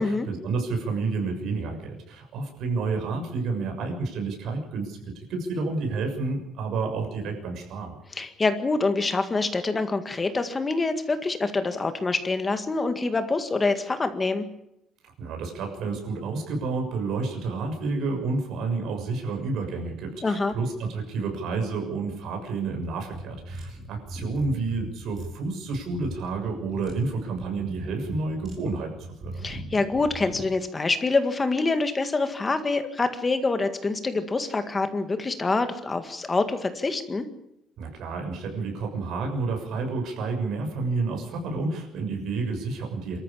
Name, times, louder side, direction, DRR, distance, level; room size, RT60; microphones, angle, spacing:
voice 1, 0.0-5.0 5.3-7.9 15.2-28.9 29.3-29.5 37.8-43.2, right 3 dB, 60° right, 2 dB, 6.6 m, -30 dB
voice 2, 8.1-14.5 20.2-20.5 29.4-37.3, left 3 dB, 20° left, 9 dB, 1.9 m, -26 dB
sound 1, 23.1-30.5, right 1 dB, 25° right, 7.2 m, -39 dB
25.5 x 14.0 x 8.7 m, 0.82 s
cardioid pair, 165°, 0 cm